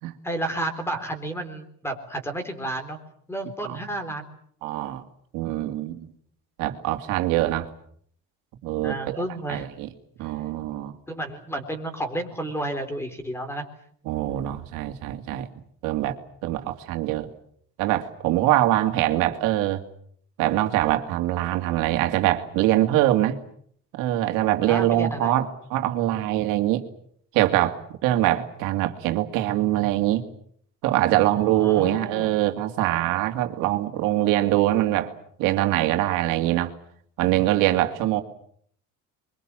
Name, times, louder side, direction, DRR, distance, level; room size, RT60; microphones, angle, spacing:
voice 1, 0.2-3.0 3.3-4.3 8.8-9.7 10.2-10.3 11.1-13.6 24.7-25.4 31.3-32.4, right 1 dB, 10° left, 8 dB, 3.8 m, -31 dB
voice 2, 4.6-5.0 5.3-6.1 6.6-7.7 8.6-9.2 9.5-9.9 10.2-10.9 14.1-15.5 15.8-16.2 16.4-17.3 17.8-19.8 20.4-23.4 23.9-26.8 27.3-27.8 28.0-30.2 30.8-35.1 35.4-36.7 37.2-38.2, right 14 dB, 80° right, 6 dB, 2.5 m, -23 dB
27.5 x 23.5 x 7.6 m, 0.64 s
cardioid pair, 165°, 32 cm